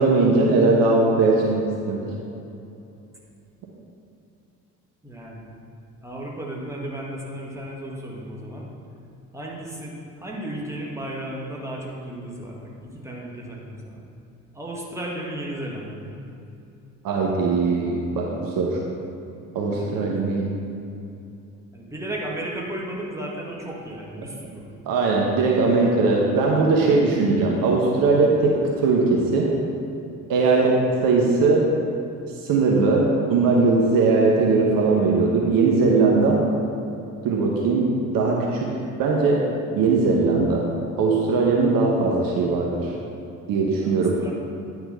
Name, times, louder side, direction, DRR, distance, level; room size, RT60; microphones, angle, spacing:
voice 1, 0.0-2.0 17.0-18.8 19.5-20.5 24.9-29.5 30.3-30.7 31.0-31.7 32.4-36.4 37.2-38.7 39.0-39.5 39.7-40.7 41.0-42.9 43.5-44.2, right 3 dB, 50° right, -1 dB, 1.1 m, -20 dB
voice 2, 5.0-5.5 6.0-8.7 9.3-14.1 14.5-16.2 19.7-20.3 21.7-24.7 30.6-30.8 43.8-44.3, right 1 dB, 5° right, -3 dB, 1.7 m, -34 dB
9.8 x 4.6 x 5.6 m, 2.7 s
figure-of-eight pair, 55°, 44 cm